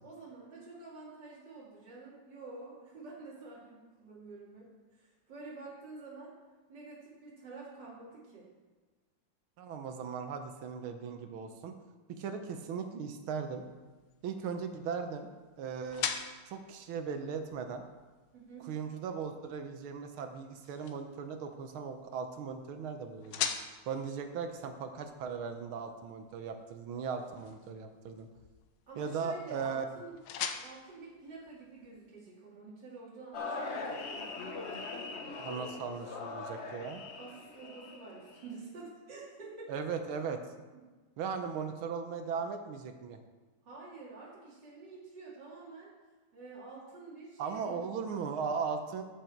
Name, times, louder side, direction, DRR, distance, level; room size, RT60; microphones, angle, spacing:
voice 1, 0.0-6.3 6.7-8.5 18.3-18.7 28.9-30.2 30.6-34.3 37.2-39.9 43.6-45.9 46.3-48.3, right 3 dB, 55° right, -7 dB, 3.2 m, -49 dB
voice 2, 9.6-11.7 12.1-13.6 14.2-15.3 15.6-16.1 16.5-17.9 18.6-23.5 23.9-28.3 29.0-29.9 35.4-37.0 39.7-40.4 41.2-43.2 47.4-49.0, right 6 dB, 80° right, 6 dB, 1.8 m, -38 dB
sound 1, 13.3-32.1, left 8 dB, 85° left, 1.6 m, -45 dB
sound 2, 33.3-38.5, left 3 dB, 45° left, 0.9 m, -41 dB
14.0 x 6.6 x 4.5 m, 1.3 s
omnidirectional pair, 2.2 m